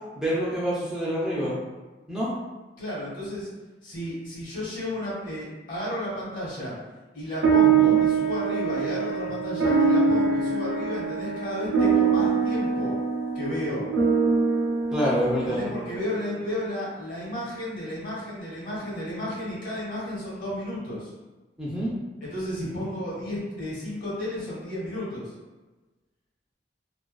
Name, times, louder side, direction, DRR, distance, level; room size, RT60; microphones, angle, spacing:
voice 1, 0.2-1.6 2.1-2.3 7.6-8.0 14.9-15.6 21.6-21.9, equal, 5° right, -8 dB, 0.4 m, -27 dB
voice 2, 2.8-3.5 3.8-6.7 7.1-13.0 13.3-13.9 15.5-21.1 22.2-25.3, left 1 dB, 50° left, -7 dB, 1.1 m, -33 dB
sound 1, 7.4-16.1, right 5 dB, 85° right, 0.5 m, -23 dB
2.4 x 2.3 x 2.3 m, 1.2 s
head